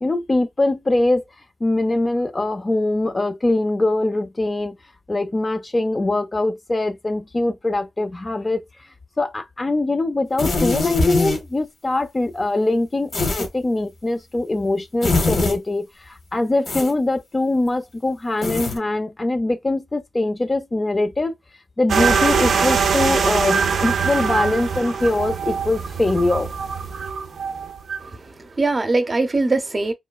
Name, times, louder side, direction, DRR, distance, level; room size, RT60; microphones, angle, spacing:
voice 1, 0.0-1.2 1.6-4.8 5.1-8.6 9.2-13.1 13.4-21.3 21.8-26.5, left 2 dB, 30° left, 0.5 m, -22 dB
sound 1, 10.4-11.4 13.1-13.5 15.0-15.6 16.6-16.9 18.4-18.8, left 3 dB, 65° left, 1.1 m, -21 dB
sound 2, 21.9-28.1, right 6 dB, 75° right, 0.4 m, -22 dB
voice 2, 28.0-29.9, right 3 dB, 40° right, 0.7 m, -22 dB
3.1 x 2.2 x 2.2 m
cardioid pair, 60°, 0 cm